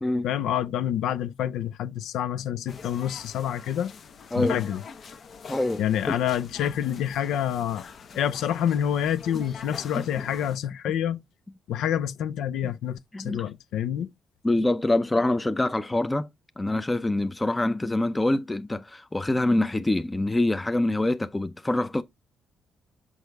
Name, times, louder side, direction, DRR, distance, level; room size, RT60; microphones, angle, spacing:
voice 1, 0.2-3.9 4.3-4.8 5.8-7.8 8.2-11.2 11.7-14.1, left 10 dB, 85° left, 0.5 m, -27 dB
sound 1, 2.7-10.6, left 5 dB, 55° left, 0.8 m, -44 dB
voice 2, 5.5-5.8 9.9-10.1 13.1-13.4 14.4-16.3 16.6-22.0, left 2 dB, 15° left, 0.5 m, -25 dB
6.4 x 5.3 x 3.4 m
cardioid pair, 90°, 0 cm